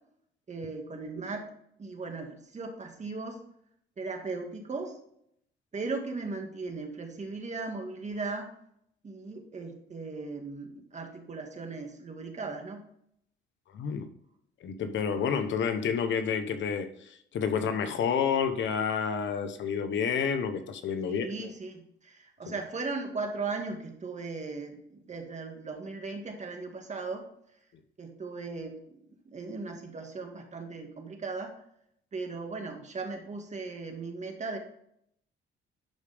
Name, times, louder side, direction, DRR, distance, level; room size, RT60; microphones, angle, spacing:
voice 1, 0.5-1.5 1.8-3.4 4.0-5.0 5.7-8.5 9.0-12.8 21.1-27.3 28.0-29.0 29.3-31.6 32.1-34.6, right 3 dB, 35° right, 3 dB, 1.9 m, -37 dB
voice 2, 13.7-14.1 14.6-21.5 22.5-22.6, left 6 dB, 70° left, 8 dB, 1.0 m, -29 dB
11.5 x 5.1 x 3.5 m, 0.70 s
cardioid pair, 90°, 20 cm